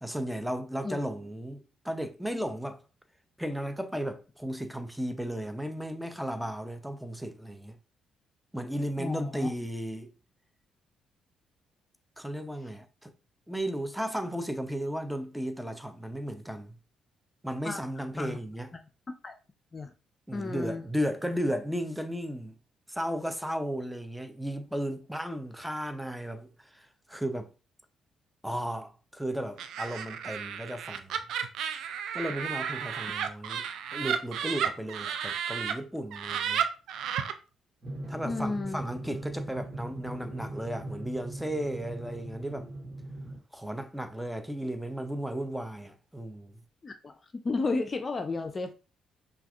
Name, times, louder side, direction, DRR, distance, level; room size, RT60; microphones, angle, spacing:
voice 1, 0.0-2.8 3.4-7.8 8.5-10.1 12.2-13.1 13.5-16.8 17.4-18.7 20.3-22.6 22.9-27.5 28.4-31.2 32.1-33.7 33.9-36.6 38.1-42.7 43.5-46.5, equal, 5° right, 0.7 m, -35 dB
voice 2, 9.0-9.5 17.6-17.8 18.2-18.4 19.2-19.3 19.7-19.9 20.3-20.9 38.2-38.8 46.8-47.1 47.4-48.7, left 3 dB, 35° left, 0.5 m, -32 dB
Laughter, 29.6-35.7 36.1-37.3, right 8 dB, 65° right, 0.4 m, -33 dB
Drum, 37.8-43.4, right 1 dB, 40° right, 1.5 m, -40 dB
5.6 x 2.4 x 2.5 m
hypercardioid pair, 45°, 0 cm